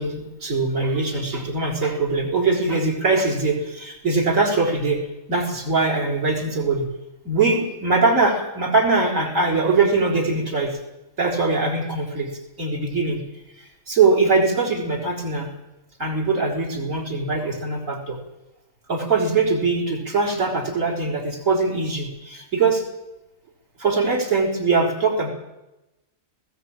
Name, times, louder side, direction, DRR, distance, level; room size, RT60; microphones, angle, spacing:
voice 1, 0.0-5.0 5.3-6.9 7.2-10.8 11.2-12.3 12.6-13.2 13.6-15.5 16.0-18.2 18.9-22.8 23.8-25.3, right 3 dB, 70° right, -1 dB, 4.5 m, -22 dB
19.0 x 17.0 x 8.9 m, 0.95 s
omnidirectional pair, 1.4 m